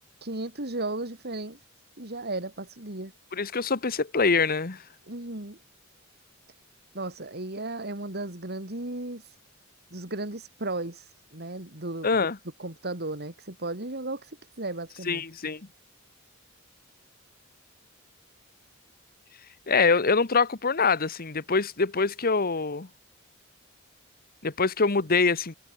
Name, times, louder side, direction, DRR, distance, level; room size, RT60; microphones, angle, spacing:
voice 1, 0.2-1.6 2.0-3.1 5.1-5.6 6.9-9.2 9.9-11.0 11.3-12.2 12.6-14.3 14.6-15.2, right 2 dB, 50° right, 3.8 m, -35 dB
voice 2, 3.3-4.8 12.0-12.4 15.1-15.6 19.7-22.9 24.4-25.5, left 4 dB, 45° left, 1.3 m, -24 dB
head